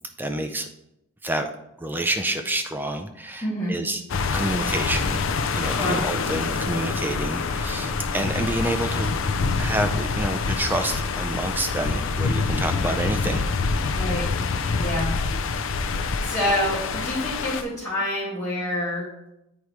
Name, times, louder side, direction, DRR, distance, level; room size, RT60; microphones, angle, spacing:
voice 1, 0.2-0.7 1.2-1.5 1.8-4.0 4.3-5.2 5.5-9.2 9.6-13.4, right 1 dB, 10° right, 6 dB, 0.4 m, -28 dB
voice 2, 3.4-3.8 5.7-6.0 13.9-14.3 14.7-15.1 16.2-19.1, left 1 dB, 15° left, -13 dB, 2.1 m, -27 dB
sound 1, 4.1-17.6, left 4 dB, 60° left, 0.4 m, -26 dB
8.3 x 4.7 x 3.1 m, 0.85 s
head